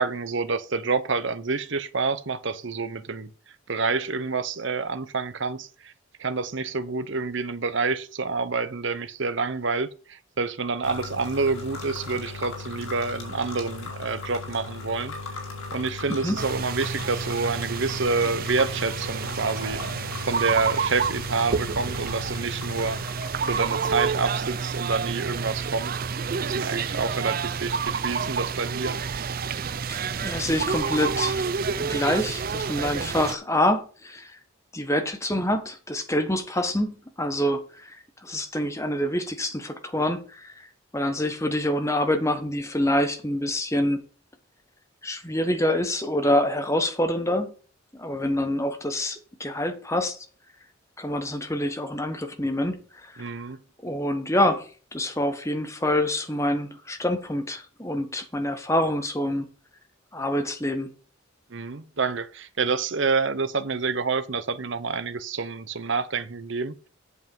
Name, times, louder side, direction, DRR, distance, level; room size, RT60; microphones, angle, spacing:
voice 1, 0.0-3.3 3.7-5.9 6.2-15.1 15.7-19.8 20.3-23.0 23.5-25.9 26.4-29.0 53.2-53.6 61.5-66.9, right 4 dB, 60° right, 0.9 m, -28 dB
sound 1, 10.8-23.9, left 3 dB, 80° left, 5.1 m, -37 dB
voice 2, 16.1-16.4 29.9-34.4 34.7-40.7 40.9-44.0 45.0-47.5 47.9-50.2 51.0-53.3 53.8-59.5 60.1-60.9, left 1 dB, 15° left, 1.3 m, -26 dB
sound 2, 16.4-33.3, right 5 dB, 45° right, 0.5 m, -29 dB
8.3 x 7.3 x 5.4 m
head